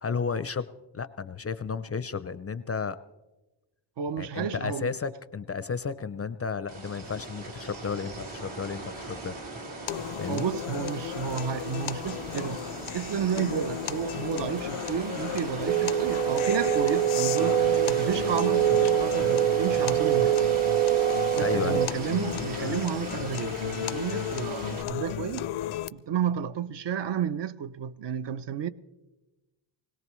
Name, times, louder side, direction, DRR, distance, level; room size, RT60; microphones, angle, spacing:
voice 1, 0.0-0.7 0.9-3.0 4.2-9.4 10.2-10.5 21.4-21.8, left 5 dB, 30° left, 0.4 m, -32 dB
voice 2, 4.0-4.9 10.3-20.5 21.4-25.5 25.9-28.7, right 8 dB, 60° right, 0.6 m, -32 dB
sound 1, 6.7-24.8, right 2 dB, 80° right, 3.4 m, -39 dB
sound 2, 9.9-25.9, left 12 dB, 85° left, 0.6 m, -35 dB
sound 3, 15.7-21.9, right 11 dB, 20° right, 0.6 m, -24 dB
21.0 x 18.0 x 3.1 m
wide cardioid pair, 115°, 49 cm